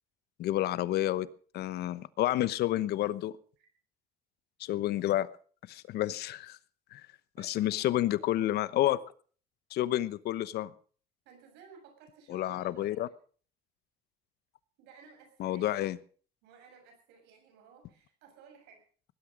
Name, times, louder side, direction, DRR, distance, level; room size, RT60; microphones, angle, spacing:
voice 1, 0.4-1.3 1.5-3.4 4.6-5.3 5.7-6.6 6.9-7.0 7.4-9.0 9.7-10.7 12.3-13.1 15.4-16.0, left 14 dB, 75° left, 16 dB, 1.0 m, -29 dB
voice 2, 7.4-8.2 11.3-12.9 14.8-15.7 16.4-18.8, right 6 dB, 90° right, 4 dB, 7.1 m, -56 dB
19.5 x 12.0 x 5.3 m, 0.44 s
cardioid pair, 110°, 17 cm